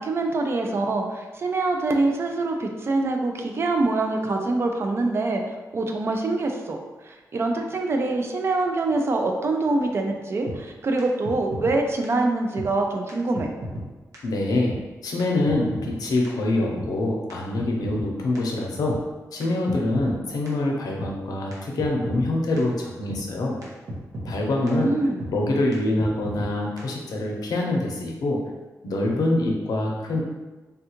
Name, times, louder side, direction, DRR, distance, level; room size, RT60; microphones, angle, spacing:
voice 1, 0.0-5.4 5.7-6.8 7.0-13.5 24.6-25.2, right 2 dB, 40° right, 3 dB, 0.4 m, -24 dB
sound 1, 10.5-10.6 11.0-11.1 11.2-11.8 12.0-12.1 12.6-12.7 13.1-13.2 13.3-13.9 14.1-14.2 14.7-14.8 15.2-15.3 15.5-16.0 16.2-16.3 16.8-16.9 17.3-18.1 18.3-18.4 18.9-19.0 19.4-19.5 19.7-20.2 20.5-20.6 21.0-21.1 21.5-21.6 21.8-22.3 22.6-22.7 23.1-23.2 23.6-23.7 23.9-24.4 24.7-24.8 25.2-25.3 25.7-25.8 26.0-26.5 26.8-26.9, equal, 60° right, 0.7 m, -33 dB
voice 2, 14.2-14.8 15.0-19.0 19.3-23.6 24.2-25.0 25.3-28.4 28.8-30.2, left 2 dB, 90° left, 0 dB, 0.6 m, -25 dB
3.4 x 2.3 x 2.9 m, 1.2 s
wide cardioid pair, 155°, 6 cm